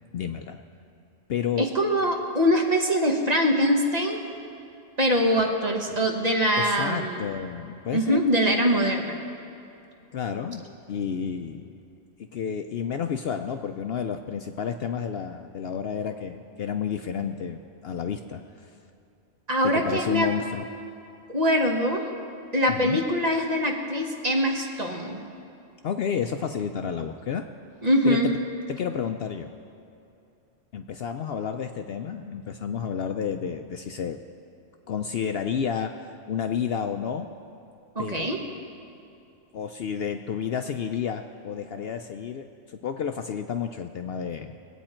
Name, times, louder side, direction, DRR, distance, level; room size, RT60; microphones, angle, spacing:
voice 1, 0.1-0.6 1.3-1.7 5.9-6.0 6.6-8.3 10.1-11.8 12.3-18.7 19.6-20.6 22.7-23.0 25.8-27.4 28.0-28.2 28.7-29.5 30.7-34.2 34.9-37.3 38.0-38.3 39.5-44.5, left 7 dB, 65° left, 6 dB, 0.7 m, -31 dB
voice 2, 1.6-4.2 5.0-7.3 7.9-9.2 19.5-20.3 21.3-22.0 22.5-25.2 27.8-28.3 37.9-38.4, equal, 35° right, 1 dB, 1.2 m, -23 dB
22.0 x 8.7 x 4.4 m, 2.7 s
omnidirectional pair, 1.3 m